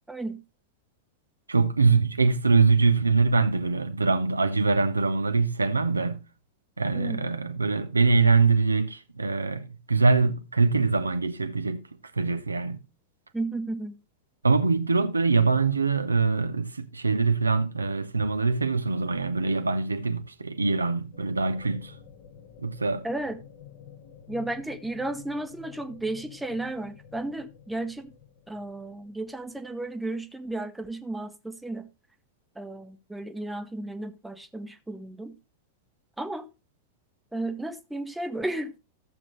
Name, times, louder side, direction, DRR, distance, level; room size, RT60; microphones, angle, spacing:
voice 1, 0.1-0.4 6.9-7.2 13.3-13.9 23.0-23.4 24.3-28.1 28.5-31.9 32.6-35.3 36.2-36.5 37.3-38.7, right 2 dB, 5° right, 1.0 m, -33 dB
voice 2, 1.5-6.2 6.8-11.9 12.1-12.8 14.4-21.9 22.6-23.0, right 4 dB, 80° right, 0.7 m, -23 dB
sound 1, 21.1-29.8, left 9 dB, 50° left, 1.5 m, -50 dB
13.5 x 7.4 x 3.1 m
figure-of-eight pair, 90°, 0 cm